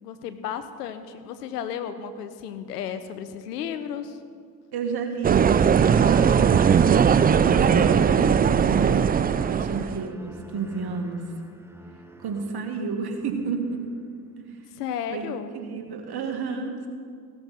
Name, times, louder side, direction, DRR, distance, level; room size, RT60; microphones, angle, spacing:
voice 1, 0.0-4.2 14.7-15.5, left 8 dB, 90° left, 10 dB, 0.8 m, -33 dB
voice 2, 4.7-11.2 12.2-13.8 14.4-14.5 15.1-16.9, right 5 dB, 55° right, 3 dB, 2.3 m, -31 dB
sound 1, 5.2-10.0, right 7 dB, 20° right, 0.4 m, -19 dB
sound 2, 5.8-12.9 13.3-13.8, right 2 dB, 5° right, 1.2 m, -38 dB
16.5 x 13.0 x 4.4 m, 2.2 s
hypercardioid pair, 50°, 46 cm